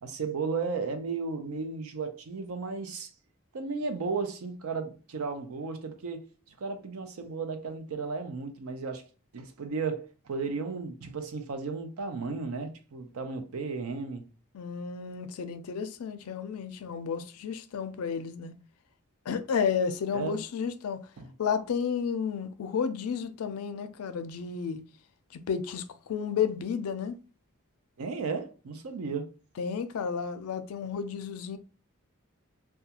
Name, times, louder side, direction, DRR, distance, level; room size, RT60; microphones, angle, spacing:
voice 1, 0.0-3.1 3.5-9.0 9.3-14.2 20.1-20.4 21.2-21.3 28.0-29.3, right 4 dB, 75° right, 0.5 m, -34 dB
voice 2, 14.5-18.5 19.3-21.1 21.4-24.8 25.3-27.2 29.6-31.6, left 6 dB, 80° left, 0.4 m, -32 dB
2.3 x 2.2 x 2.8 m
head